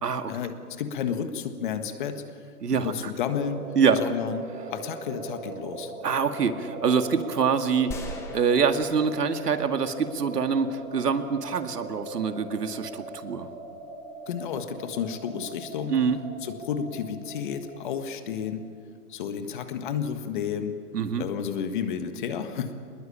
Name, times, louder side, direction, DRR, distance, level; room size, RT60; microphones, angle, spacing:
voice 1, 0.3-2.4 2.8-3.7 3.9-4.4 4.7-5.9 14.3-16.0 16.4-18.6 19.1-20.7 21.2-22.7, left 7 dB, 30° left, 8 dB, 1.6 m, -31 dB
voice 2, 2.6-3.1 3.8-4.0 6.0-13.5 15.9-16.2 20.9-21.2, right 6 dB, 85° right, 8 dB, 2.2 m, -25 dB
sound 1, 3.3-18.7, right 3 dB, 20° right, 3.7 m, -41 dB
sound 2, 7.9-10.2, left 2 dB, 5° left, 1.1 m, -41 dB
24.5 x 21.0 x 8.6 m, 2.1 s
hypercardioid pair, 160°, 46 cm